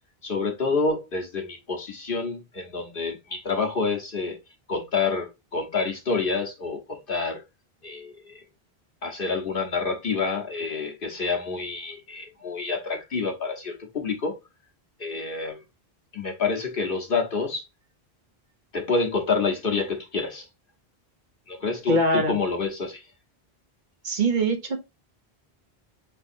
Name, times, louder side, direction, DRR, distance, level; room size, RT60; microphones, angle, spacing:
voice 1, 0.2-4.4 4.7-7.4 7.8-8.5 9.0-14.4 15.0-15.6 16.1-17.7 18.7-20.5 21.5-23.1, left 4 dB, 60° left, 1.2 m, -28 dB
voice 2, 21.9-22.4 24.0-24.8, right 2 dB, 55° right, 0.9 m, -23 dB
5.4 x 3.4 x 2.6 m
omnidirectional pair, 1.0 m